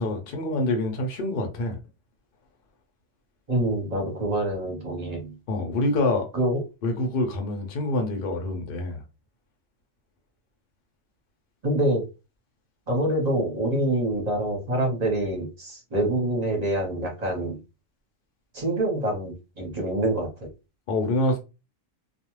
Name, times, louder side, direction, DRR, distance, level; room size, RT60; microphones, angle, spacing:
voice 1, 0.0-1.8 5.5-6.3 6.8-9.0 20.9-21.4, left 2 dB, 50° left, 0.8 m, -26 dB
voice 2, 3.5-5.4 6.3-6.6 11.6-12.0 12.9-17.6 18.5-20.5, right 1 dB, 35° right, 0.9 m, -26 dB
2.4 x 2.3 x 3.0 m
omnidirectional pair, 1.4 m